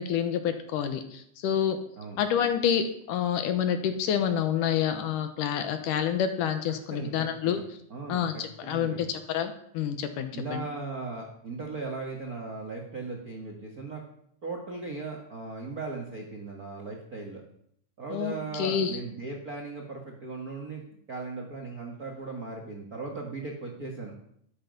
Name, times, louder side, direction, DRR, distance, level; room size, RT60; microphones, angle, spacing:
voice 1, 0.0-1.8 2.2-7.6 8.1-10.6 18.1-19.0, left 8 dB, 70° left, 8 dB, 2.1 m, -28 dB
voice 2, 6.9-7.6 7.9-9.1 10.3-14.0 14.4-17.4 18.0-20.8 21.1-24.1, right 3 dB, 80° right, 1 dB, 0.8 m, -38 dB
12.5 x 10.0 x 5.3 m, 0.70 s
omnidirectional pair, 4.5 m